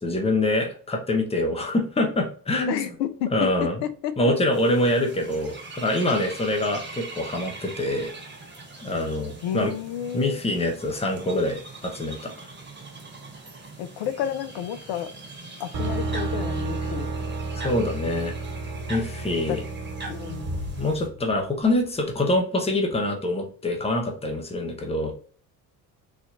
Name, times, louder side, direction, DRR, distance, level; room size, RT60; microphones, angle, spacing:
voice 1, 0.0-2.9 3.3-3.7 4.2-8.1 8.8-9.7 10.1-12.3 17.6-18.3 18.9-19.6 20.8-25.1, left 1 dB, 10° left, 3 dB, 1.0 m, -25 dB
voice 2, 2.7-4.3 9.4-10.4 13.8-15.1 15.6-17.1 19.5-19.6 20.1-20.6, left 10 dB, 60° left, 11 dB, 0.7 m, -31 dB
sound 1, 4.5-21.1, right 3 dB, 20° right, 1.6 m, -42 dB
sound 2, 15.7-21.6, right 3 dB, 50° right, 1.6 m, -31 dB
4.1 x 2.8 x 2.5 m, 0.42 s
hypercardioid pair, 60°, 50 cm